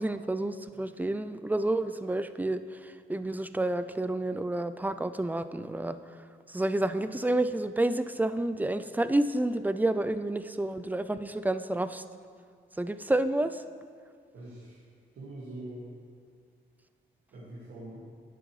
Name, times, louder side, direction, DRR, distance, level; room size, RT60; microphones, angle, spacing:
voice 1, 0.0-12.0 12.8-13.6, right 1 dB, 10° right, 11 dB, 0.4 m, -30 dB
voice 2, 14.3-14.8 15.1-15.9 17.3-18.0, right 1 dB, 90° right, -8 dB, 2.0 m, -43 dB
11.0 x 9.2 x 3.2 m, 2.1 s
cardioid pair, 75°, 20 cm